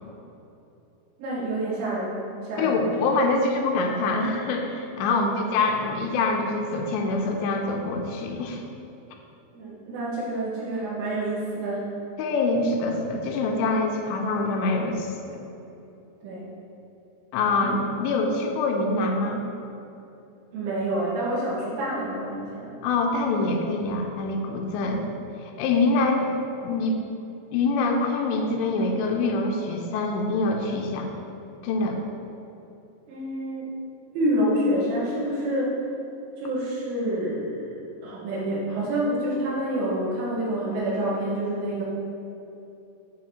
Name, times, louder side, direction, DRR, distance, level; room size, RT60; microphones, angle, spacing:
voice 1, 1.2-2.9 5.2-5.4 9.5-11.9 16.2-16.5 17.5-17.7 20.5-22.7 33.1-33.7 34.1-35.8 36.4-41.8, right 1 dB, 80° right, -12 dB, 4.1 m, -28 dB
voice 2, 2.6-8.6 12.2-15.4 17.3-19.4 22.8-25.0 25.4-26.3 26.6-27.0 27.5-31.1 31.6-32.0, left 3 dB, 85° left, 2 dB, 2.8 m, -25 dB
8.7 x 3.6 x 6.3 m, 2.9 s
omnidirectional pair, 5.1 m